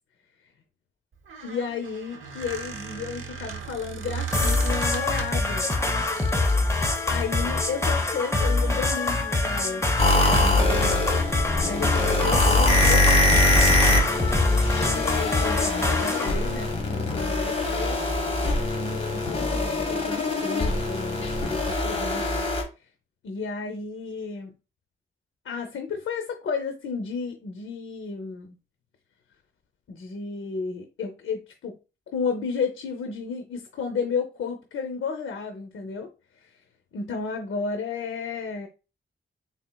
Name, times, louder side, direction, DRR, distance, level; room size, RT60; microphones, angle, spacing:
Squeak, 1.1-5.5 6.1-6.6, right 6 dB, 80° right, 0.8 m, -36 dB
voice 1, 1.4-5.7 7.1-11.0 11.6-13.7 14.7-18.0 18.8-22.5 23.2-24.5 25.4-28.6 29.9-31.8 32.1-36.1 36.4-36.5 36.9-38.7, left 5 dB, 75° left, 0.6 m, -33 dB
sound 1, 4.3-16.3, left 2 dB, 15° left, 0.6 m, -24 dB
sound 2, 10.0-22.6, left 2 dB, 30° left, 1.1 m, -23 dB
4.2 x 3.6 x 2.2 m
wide cardioid pair, 130°, 21 cm